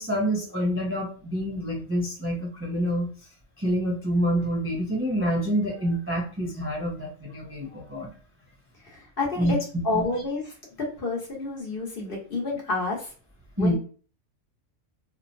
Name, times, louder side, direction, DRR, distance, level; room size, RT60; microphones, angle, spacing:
voice 1, 0.0-3.1 3.6-8.1 9.4-9.5 9.9-10.0 13.6-13.8, equal, 20° right, -2 dB, 0.3 m, -27 dB
voice 2, 8.8-9.6 9.8-13.1 13.6-13.8, left 3 dB, 50° left, -2 dB, 1.1 m, -29 dB
2.9 x 2.1 x 2.5 m, 0.40 s
omnidirectional pair, 1.3 m